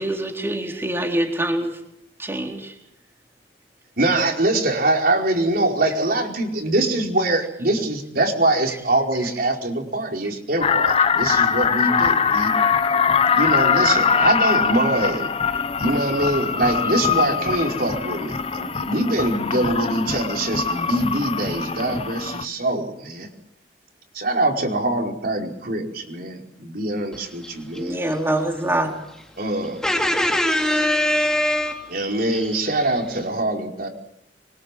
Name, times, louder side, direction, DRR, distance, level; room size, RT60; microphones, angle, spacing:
voice 1, 0.0-1.8 2.2-2.7 27.8-28.9, right 1 dB, 15° right, 2 dB, 3.9 m, -24 dB
voice 2, 4.0-12.5 13.3-15.3 15.8-23.3 24.1-28.0 29.4-29.8 31.9-33.9, right 1 dB, 60° right, 1 dB, 5.1 m, -23 dB
sound 1, 10.6-22.5, left 6 dB, 35° left, 1.1 m, -22 dB
voice 3, 29.8-31.9, left 1 dB, 5° left, 1 dB, 2.8 m, -21 dB
26.0 x 24.0 x 7.8 m, 0.79 s
head